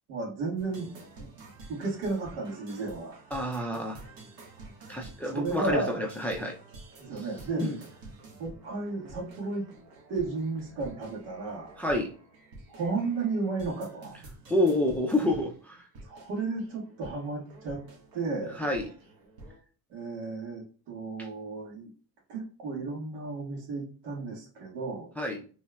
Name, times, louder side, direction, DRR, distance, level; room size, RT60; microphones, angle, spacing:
voice 1, 0.1-1.3 1.7-3.2 5.2-6.0 7.0-7.6 8.4-9.7 10.1-11.8 12.7-14.2 16.0-17.8 18.1-18.6 19.9-21.9 22.3-25.1, right 3 dB, 80° right, -1 dB, 1.8 m, -33 dB
sound 1, 0.6-19.6, right 2 dB, 65° right, 1.5 m, -50 dB
voice 2, 3.3-4.0 4.9-6.5 7.6-7.8 11.8-12.1 14.5-15.8 18.6-18.9 25.2-25.4, left 1 dB, 5° left, 1 dB, 0.4 m, -28 dB
4.3 x 3.2 x 2.3 m, 0.39 s
cardioid pair, 130°, 40 cm